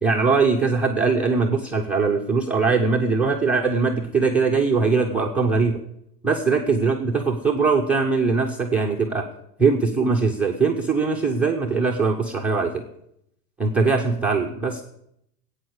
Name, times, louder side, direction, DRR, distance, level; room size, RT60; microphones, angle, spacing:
voice 1, 0.0-5.8 6.2-9.2 9.6-12.8 13.6-14.8, right 4 dB, 5° right, -3 dB, 0.5 m, -21 dB
15.5 x 8.8 x 8.0 m, 0.76 s
supercardioid pair, 150°, 47 cm